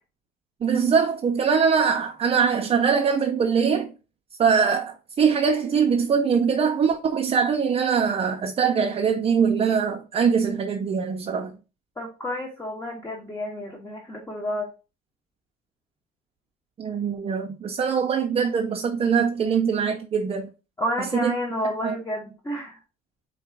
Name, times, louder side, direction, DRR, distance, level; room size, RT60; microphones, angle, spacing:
voice 1, 0.6-3.9 4.4-11.6 16.8-20.5 21.0-21.3 21.8-22.0, right 6 dB, 35° right, 0.5 m, -22 dB
voice 2, 12.0-14.7 20.8-22.8, equal, 20° left, 1.1 m, -30 dB
4.5 x 2.4 x 4.6 m
cardioid pair, 110°, 17 cm